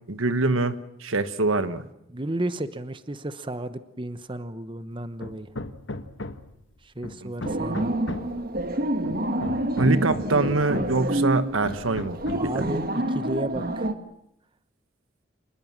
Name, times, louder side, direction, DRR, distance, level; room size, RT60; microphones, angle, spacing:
voice 1, 0.1-1.9 7.2-7.3 9.8-12.6, right 2 dB, 85° right, 12 dB, 1.3 m, -24 dB
voice 2, 2.1-5.5 6.8-7.9 12.3-13.9, right 1 dB, 25° right, 12 dB, 1.0 m, -33 dB
Hammer, 5.2-6.6 7.0-8.4 9.0-11.1 11.6-12.6, left 2 dB, 65° left, 1.3 m, -36 dB
sound 1, 7.4-13.9, right 1 dB, 50° right, 1.4 m, -28 dB
26.0 x 20.5 x 7.5 m, 0.79 s
head